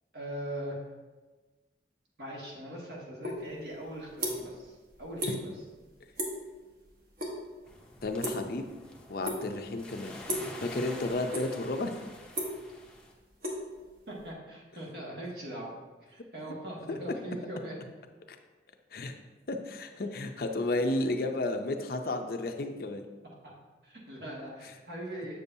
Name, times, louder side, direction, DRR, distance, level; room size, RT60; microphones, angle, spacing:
voice 1, 0.1-0.8 2.2-5.5 14.1-15.8 16.1-17.8 23.4-23.5 23.8-25.4, right 1 dB, 65° right, -3 dB, 1.7 m, -41 dB
sound 1, 3.2-3.4 3.7-4.6 4.9-5.4 5.7-5.9 6.2-6.5 6.8-7.3 7.6-8.8 9.2-9.7 10.2-10.6 11.0-11.7 12.0-14.2, equal, 50° right, 1.2 m, -35 dB
sound 2, 7.7-13.1, left 1 dB, 5° left, 0.6 m, -47 dB
voice 2, 8.0-8.8 9.1-10.2 10.6-11.9 16.9-17.0 18.3-18.4 18.9-19.2 19.5-23.0, left 2 dB, 55° left, 6 dB, 0.5 m, -32 dB
7.6 x 6.8 x 2.7 m, 1.3 s
head